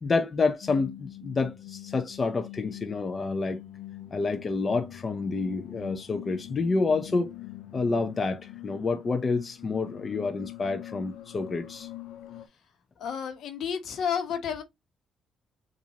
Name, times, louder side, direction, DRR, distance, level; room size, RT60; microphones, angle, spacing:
voice 1, 0.0-3.6 4.1-7.3 7.7-11.9, left 3 dB, 35° left, 0.7 m, -28 dB
sound 1, 0.6-12.5, left 14 dB, 90° left, 0.8 m, -44 dB
voice 2, 13.0-14.6, left 7 dB, 75° left, 1.2 m, -31 dB
6.9 x 2.7 x 2.8 m
cardioid pair, 90°, 0 cm